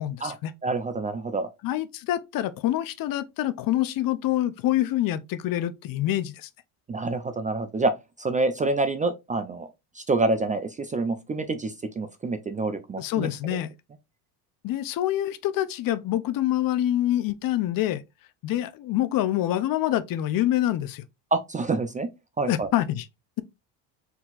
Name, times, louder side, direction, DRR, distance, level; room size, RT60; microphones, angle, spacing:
voice 1, 0.0-0.5 1.6-6.5 13.0-13.7 14.6-18.0 18.4-21.0 22.4-23.1, left 13 dB, 50° left, 0.6 m, -26 dB
voice 2, 0.6-1.5 6.9-7.9 8.2-9.7 10.0-13.6 21.3-22.1 22.4-22.7, right 3 dB, 20° right, 0.4 m, -27 dB
4.3 x 4.0 x 2.4 m
cardioid pair, 115°, 44 cm